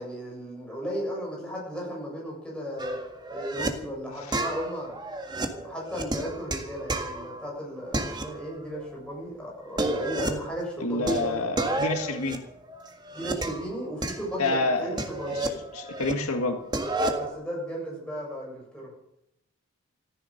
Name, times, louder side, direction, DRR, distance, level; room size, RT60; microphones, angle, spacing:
voice 1, 0.0-3.0 3.3-5.0 5.5-11.4 13.1-15.4 17.1-18.9, equal, 5° left, -3 dB, 7.4 m, -35 dB
sound 1, 2.8-3.7 4.3-7.5 7.9-8.8 9.1-9.2 9.6-10.5 11.1-13.7 14.0-16.1 16.4-17.3, right 1 dB, 20° right, 1.7 m, -31 dB
voice 2, 10.8-12.4 14.4-15.0 15.3-16.6, left 2 dB, 80° left, 5 dB, 1.9 m, -28 dB
14.5 x 14.0 x 6.6 m, 0.79 s
head